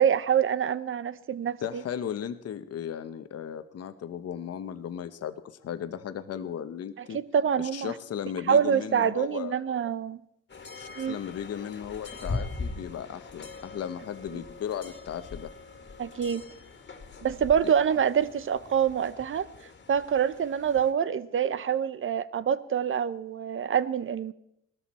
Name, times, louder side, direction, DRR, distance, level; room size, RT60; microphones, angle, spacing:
voice 1, 0.0-1.8 7.1-7.9 8.5-10.2 11.0-11.2 16.0-16.4 17.2-19.5 19.9-24.3, right 8 dB, 45° right, 15 dB, 0.8 m, -26 dB
voice 2, 1.6-7.2 7.7-9.6 10.8-15.5 17.6-17.7, left 9 dB, 55° left, 10 dB, 1.0 m, -36 dB
sound 1, 10.5-20.9, left 3 dB, 35° left, 1.9 m, -41 dB
18.0 x 13.5 x 4.3 m, 0.76 s
cardioid pair, 90°, 30 cm